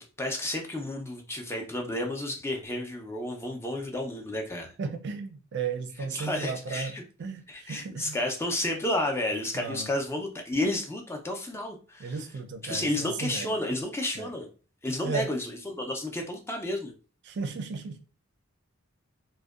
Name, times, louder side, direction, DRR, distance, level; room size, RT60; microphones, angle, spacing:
voice 1, 0.2-4.7 6.1-7.0 7.5-12.1 12.6-14.5 14.8-16.9, left 1 dB, 15° left, 0.4 m, -31 dB
voice 2, 4.8-6.9 7.2-8.2 9.5-9.9 12.0-13.6 14.1-14.3 15.0-15.4 17.2-18.0, right 4 dB, 60° right, 0.4 m, -35 dB
2.6 x 2.1 x 2.3 m
head